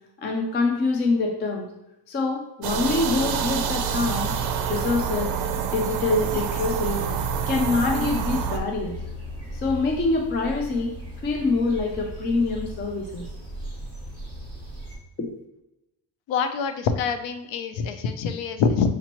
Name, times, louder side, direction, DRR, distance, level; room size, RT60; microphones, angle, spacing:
voice 1, 0.2-1.7 2.1-4.3 4.7-5.3 5.6-7.0 7.5-9.0 9.5-10.9 11.2-13.3 15.2-15.3, left 3 dB, 25° left, 1 dB, 0.3 m, -25 dB
sound 1, 2.6-8.6, right 7 dB, 50° right, 0.5 m, -27 dB
sound 2, 5.9-15.0, right 1 dB, 10° left, 1.4 m, -37 dB
voice 2, 16.3-18.9, left 6 dB, 60° left, 8 dB, 0.6 m, -25 dB
6.0 x 2.9 x 2.9 m, 0.92 s
cardioid pair, 155°, 50 cm